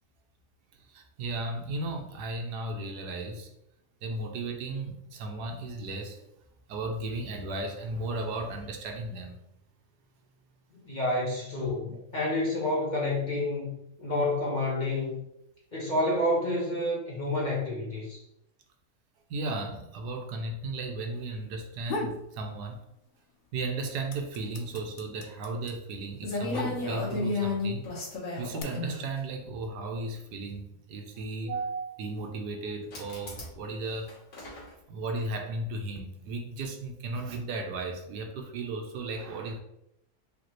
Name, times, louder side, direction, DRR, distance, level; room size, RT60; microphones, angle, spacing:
voice 1, 0.7-3.5 4.0-6.2 6.7-9.4 11.6-12.0 19.3-22.8 23.5-27.8 28.4-34.2 34.9-39.6, right 2 dB, 80° right, 3 dB, 1.3 m, -35 dB
voice 2, 10.9-13.7 14.0-15.2 15.7-18.2, left 1 dB, 30° left, -5 dB, 1.2 m, -29 dB
sound 1, 21.6-22.3 22.7-23.4 23.6-27.2 28.0-28.6, left 2 dB, 85° left, 1.3 m, -37 dB
sound 2, 25.9-26.0 26.2-29.0 30.0-30.1 32.9-33.6 33.9-34.7, left 3 dB, 55° left, 1.6 m, -33 dB
5.1 x 3.3 x 3.0 m, 0.80 s
omnidirectional pair, 1.8 m